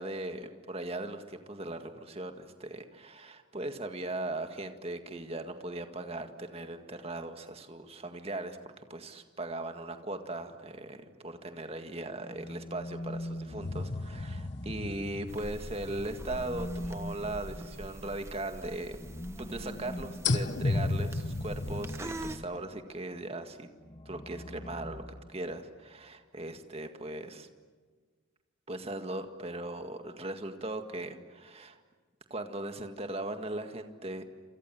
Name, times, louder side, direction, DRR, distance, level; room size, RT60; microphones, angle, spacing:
voice 1, 0.0-8.6 8.9-19.0 19.4-23.7 24.1-25.0 25.3-27.5 28.7-31.8 32.3-34.2, right 2 dB, 30° right, 7 dB, 1.9 m, -39 dB
sound 1, 12.2-15.5 16.2-22.8 23.8-25.7, left 1 dB, 20° left, 0.8 m, -43 dB
sound 2, 13.6-17.6 18.0-18.1 20.2-22.0, left 3 dB, 55° left, 1.2 m, -34 dB
sound 3, 15.3-22.4, right 1 dB, 15° right, 1.3 m, -44 dB
28.5 x 27.5 x 7.7 m, 1.5 s
head